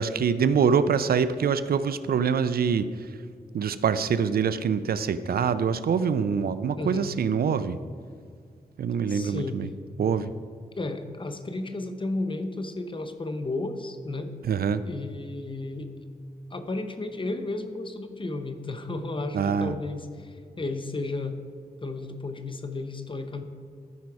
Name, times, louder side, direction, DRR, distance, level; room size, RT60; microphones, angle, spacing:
voice 1, 0.0-3.2 3.5-7.8 8.8-9.7 10.0-10.3 14.4-14.8 19.3-19.8, right 6 dB, 75° right, 13 dB, 0.4 m, -25 dB
voice 2, 6.8-7.1 9.1-9.6 10.8-14.3 14.8-15.9 16.5-21.4 21.8-23.4, left 2 dB, 30° left, 8 dB, 0.8 m, -33 dB
13.5 x 5.2 x 4.8 m, 2.1 s
wide cardioid pair, 90°, 16 cm